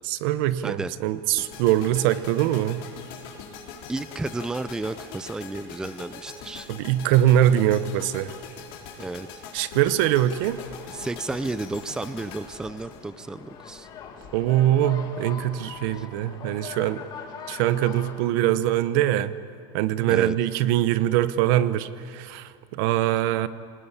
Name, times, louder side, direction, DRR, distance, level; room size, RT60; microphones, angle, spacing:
voice 1, 0.0-2.8 6.7-8.4 9.5-10.6 14.3-17.0 17.5-19.3 19.7-23.5, right 12 dB, 65° right, 14 dB, 0.9 m, -23 dB
sound 1, 1.4-13.6, left 6 dB, 70° left, 4.2 m, -42 dB
voice 2, 3.9-6.7 9.0-9.4 10.9-13.9 16.0-16.1 20.1-20.4, right 2 dB, 5° right, 14 dB, 0.5 m, -32 dB
sound 2, 10.1-18.3, left 7 dB, 35° left, 2.5 m, -42 dB
21.5 x 20.0 x 8.3 m, 2.5 s
supercardioid pair, 150°, 12 cm